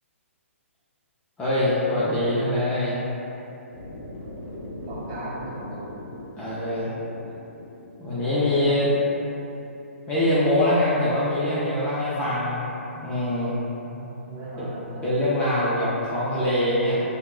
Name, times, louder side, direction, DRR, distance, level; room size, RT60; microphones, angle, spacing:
voice 1, 1.4-3.0 6.4-7.0 8.0-9.1 10.1-12.7 12.9-13.6 15.0-17.0, left 1 dB, 15° left, -11 dB, 0.4 m, -23 dB
sound 1, 3.7-9.8, left 1 dB, 60° left, 0.5 m, -41 dB
voice 2, 4.9-5.9 13.9-15.1, right 1 dB, 30° right, -8 dB, 0.6 m, -37 dB
2.8 x 2.2 x 2.2 m, 2.9 s
figure-of-eight pair, 125°, 7 cm